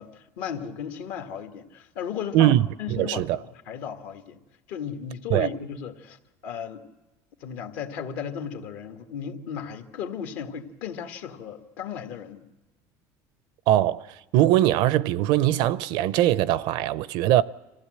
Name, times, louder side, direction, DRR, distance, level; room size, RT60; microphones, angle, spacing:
voice 1, 0.0-2.5 2.8-4.4 4.7-6.8 7.4-12.5, left 7 dB, 75° left, 1.9 m, -35 dB
voice 2, 2.3-3.4 5.3-5.5 13.7-14.1 14.3-17.4, right 13 dB, 70° right, 0.6 m, -21 dB
25.0 x 15.5 x 7.8 m
cardioid pair, 125°, 8 cm